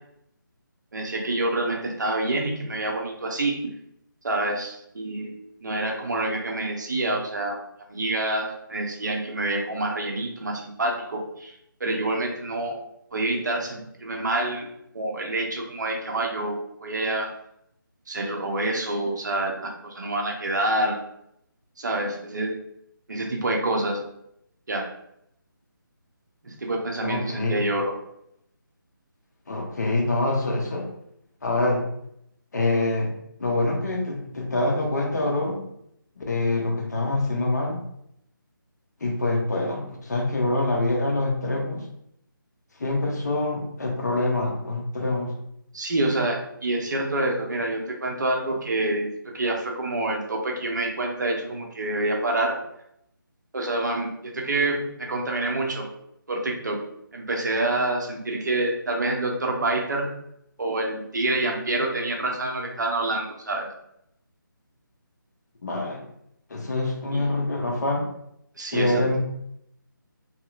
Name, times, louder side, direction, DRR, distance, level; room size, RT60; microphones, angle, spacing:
voice 1, 0.9-3.6 4.2-7.6 7.9-12.8 13.1-14.7 14.9-17.3 18.1-21.0 21.8-22.6 23.1-24.0 24.7-24.9 26.4-27.9 45.7-52.6 53.5-55.9 56.3-56.8 57.1-60.1 60.6-63.7 67.1-67.3 68.6-69.0, right 2 dB, 55° right, 0 dB, 0.7 m, -27 dB
voice 2, 27.0-27.5 29.5-30.9 31.4-31.8 32.5-33.1 33.4-35.6 36.2-37.8 39.0-41.8 42.8-45.3 65.6-66.0 66.5-68.1 68.7-69.2, left 2 dB, 50° left, 0 dB, 0.8 m, -25 dB
2.9 x 2.8 x 2.5 m, 0.76 s
figure-of-eight pair, 155°, 12 cm